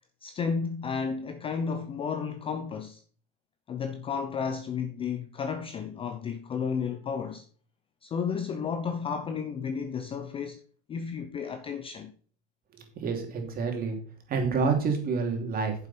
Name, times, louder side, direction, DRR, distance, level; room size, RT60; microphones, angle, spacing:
voice 1, 0.2-3.0 3.7-7.5 8.0-10.6 10.9-12.1, left 6 dB, 15° left, 0.5 m, -32 dB
voice 2, 13.0-14.0 14.3-15.7, right 4 dB, 30° right, 2.8 m, -28 dB
9.6 x 7.3 x 4.3 m
supercardioid pair, 130°, 32 cm